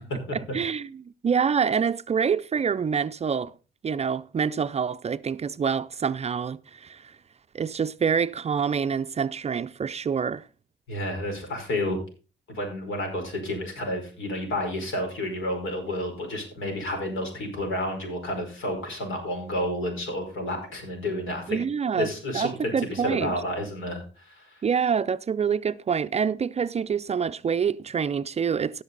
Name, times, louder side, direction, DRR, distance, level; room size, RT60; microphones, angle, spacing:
voice 1, 0.5-3.5 3.8-7.1 7.5-10.4 21.5-23.3 24.6-28.8, right 6 dB, 35° right, 0.5 m, -26 dB
voice 2, 10.9-12.0 12.5-21.6 22.0-24.6, left 1 dB, 75° left, 5.2 m, -30 dB
16.5 x 6.7 x 3.9 m
cardioid pair, 90°, 20 cm